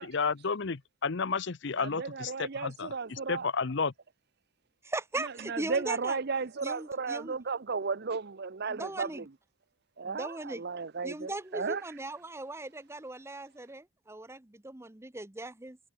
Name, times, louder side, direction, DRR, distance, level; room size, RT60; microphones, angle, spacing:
voice 1, 0.0-3.9, left 5 dB, 55° left, 0.7 m, -32 dB
voice 2, 1.8-3.5 5.5-9.2 10.0-11.8, right 4 dB, 50° right, 0.7 m, -34 dB
voice 3, 4.8-6.2 6.6-7.4 8.7-9.3 10.0-10.6 11.0-15.8, right 2 dB, 10° right, 0.7 m, -39 dB
head